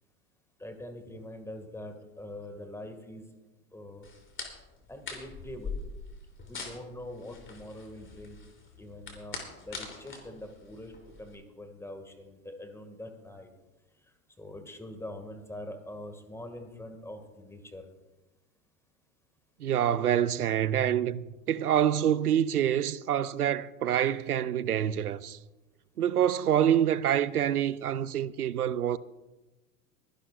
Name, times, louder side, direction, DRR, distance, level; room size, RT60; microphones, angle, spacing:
voice 1, 0.6-3.2 3.7-4.1 4.9-5.7 6.5-8.4 8.8-10.9 11.2-13.5 14.4-17.8, left 1 dB, 5° left, 2.0 m, -44 dB
sound 1, 4.0-11.3, left 4 dB, 25° left, 3.2 m, -43 dB
voice 2, 19.6-25.4 26.0-29.0, right 10 dB, 90° right, 0.6 m, -26 dB
23.0 x 11.5 x 2.5 m
hypercardioid pair, 85°, 44 cm